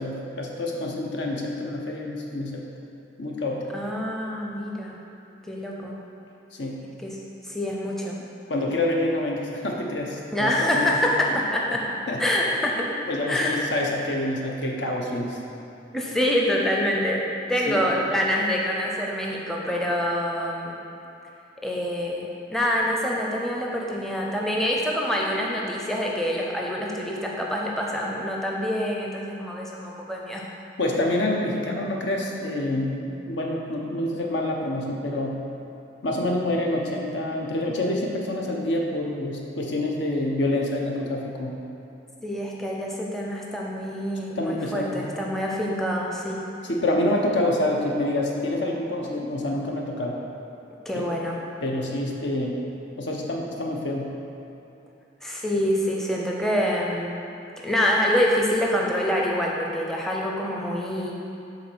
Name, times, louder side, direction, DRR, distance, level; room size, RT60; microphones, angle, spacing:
voice 1, 0.0-2.6 3.2-3.6 6.5-6.8 8.5-11.0 12.1-12.3 13.1-15.4 17.7-17.9 30.8-35.4 36.0-41.5 44.4-45.1 46.7-50.2 50.9-51.0 51.6-52.6 53.0-54.1, left 1 dB, 75° left, -1 dB, 1.0 m, -27 dB
voice 2, 3.7-5.0 5.5-5.9 7.0-8.1 10.3-11.9 12.2-12.9 13.3-13.6 15.9-17.2 17.5-20.8 21.6-30.4 42.2-46.5 50.9-51.4 55.2-57.1 57.6-61.1, equal, ahead, -3 dB, 0.6 m, -26 dB
7.2 x 4.0 x 6.2 m, 2.8 s
head